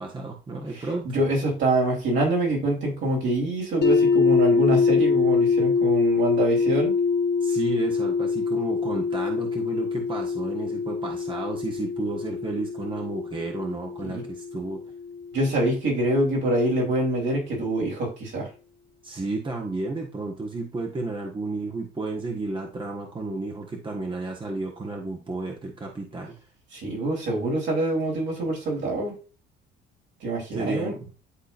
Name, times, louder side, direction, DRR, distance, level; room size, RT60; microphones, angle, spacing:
voice 1, 0.0-1.0 7.4-14.8 19.0-26.4 30.5-31.1, right 3 dB, 25° right, 0 dB, 1.4 m, -32 dB
voice 2, 1.0-6.9 14.0-14.2 15.3-18.5 26.7-29.1 30.2-30.9, right 1 dB, 65° right, -2 dB, 3.7 m, -25 dB
sound 1, 3.8-15.7, left 5 dB, 55° left, 1.5 m, -24 dB
11.5 x 3.9 x 2.5 m, 0.34 s
supercardioid pair, 80°, 20 cm